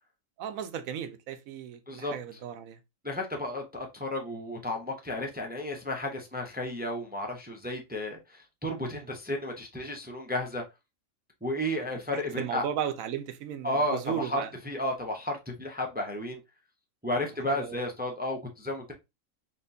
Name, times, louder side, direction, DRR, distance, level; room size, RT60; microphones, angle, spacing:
voice 1, 0.4-2.8 8.8-9.1 12.4-14.5 17.5-17.8, right 9 dB, 85° right, 1.1 m, -35 dB
voice 2, 3.0-10.6 11.4-12.6 13.6-16.4 17.0-18.9, left 1 dB, 10° right, 0.5 m, -33 dB
4.3 x 3.4 x 2.6 m
omnidirectional pair, 1.4 m